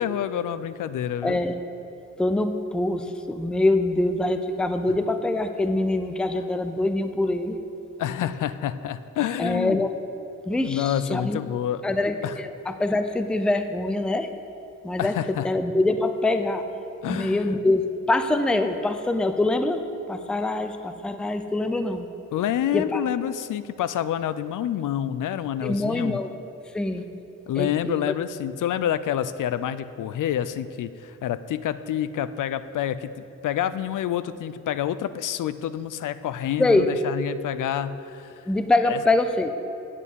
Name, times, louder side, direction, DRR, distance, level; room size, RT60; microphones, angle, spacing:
voice 1, 0.0-1.4 8.0-9.8 10.6-11.8 12.2-12.4 15.0-15.5 17.0-17.6 22.3-26.2 27.5-33.1 33.4-38.4 38.9-39.0, left 10 dB, 75° left, 14 dB, 0.5 m, -28 dB
voice 2, 1.2-1.5 2.2-7.6 9.4-9.9 10.4-11.4 11.8-14.3 14.8-15.1 15.4-16.6 17.1-22.1 22.7-23.0 25.6-26.3 26.7-27.0 27.6-28.0 36.6-36.9 38.4-39.5, left 2 dB, 5° left, 8 dB, 0.4 m, -24 dB
8.3 x 7.1 x 8.3 m, 2.8 s
wide cardioid pair, 150°, 32 cm